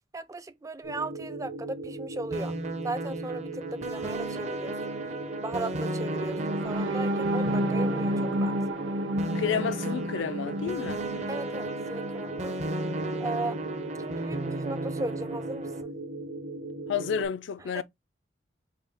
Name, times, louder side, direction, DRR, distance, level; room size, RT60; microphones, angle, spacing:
voice 1, 0.1-2.5 2.8-5.0 5.4-8.6 11.3-12.5 13.2-13.6 14.0-15.9 17.7-17.8, right 2 dB, 15° right, 0.4 m, -37 dB
sound 1, 0.8-17.3, right 2 dB, 65° right, 1.7 m, -38 dB
sound 2, 2.3-15.8, right 2 dB, 40° right, 0.8 m, -35 dB
sound 3, 6.4-12.3 12.8-12.9 13.3-13.5, equal, 90° right, 0.7 m, -31 dB
voice 2, 9.3-11.0 16.9-17.8, left 7 dB, 80° left, 0.4 m, -30 dB
6.6 x 2.2 x 3.4 m
head